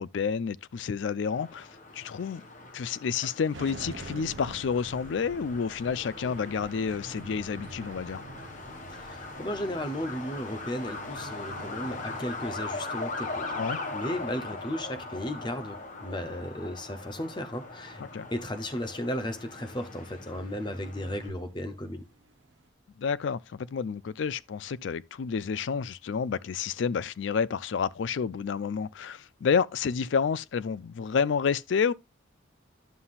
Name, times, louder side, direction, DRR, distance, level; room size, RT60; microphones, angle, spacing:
voice 1, 0.0-2.4 2.7-8.2 13.5-13.8 18.1-18.3 23.0-31.9, left 6 dB, 65° left, 0.4 m, -29 dB
Truck, 1.3-21.3, left 3 dB, 40° left, 1.3 m, -40 dB
sound 1, 3.5-22.7, right 2 dB, 65° right, 0.8 m, -49 dB
voice 2, 8.9-18.0 18.3-22.0, left 1 dB, 25° left, 0.8 m, -35 dB
11.5 x 5.6 x 2.5 m
head